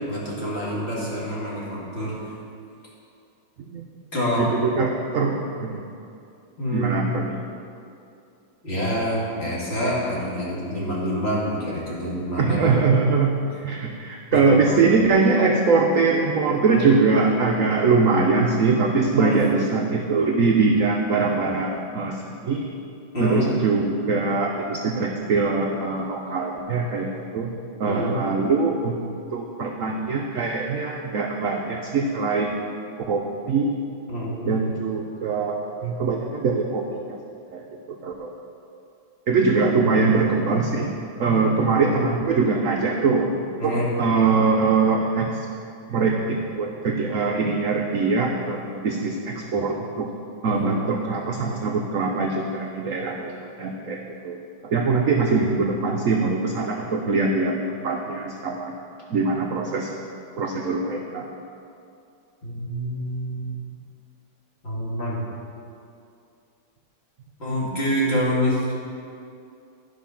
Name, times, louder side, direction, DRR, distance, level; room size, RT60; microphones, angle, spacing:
voice 1, 0.1-2.2 4.1-4.5 6.6-7.2 8.6-12.8 14.3-14.8 16.7-16.8 19.1-19.4 23.1-23.5 27.8-28.2 34.1-34.5 43.6-43.9 50.5-50.8 62.4-63.5 64.6-65.2 67.4-68.7, equal, 35° left, -7 dB, 2.4 m, -26 dB
voice 2, 4.4-5.8 6.7-7.4 12.4-13.3 13.6-22.7 23.2-27.5 27.8-32.5 33.1-33.7 34.5-37.2 37.5-38.3 39.3-40.9 41.2-45.5 45.9-50.1 50.4-54.4 54.6-58.8 59.1-59.9 60.4-61.3 67.6-67.7, right 4 dB, 65° right, 1 dB, 0.8 m, -22 dB
11.5 x 5.5 x 5.7 m, 2.5 s
omnidirectional pair, 2.1 m